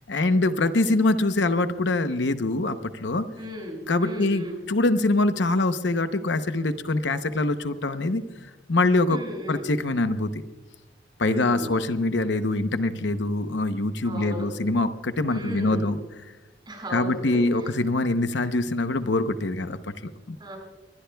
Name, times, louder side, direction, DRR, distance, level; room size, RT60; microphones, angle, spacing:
voice 1, 0.1-3.3 3.9-9.2 9.5-10.4 11.2-16.0 16.9-20.4, left 2 dB, 70° left, 9 dB, 0.8 m, -24 dB
voice 2, 3.4-4.6 9.1-9.7 11.2-11.7 14.0-14.5 15.3-15.9 16.7-17.7 20.4-20.6, equal, 25° right, 0 dB, 6.9 m, -36 dB
24.5 x 20.5 x 2.3 m, 1.1 s
head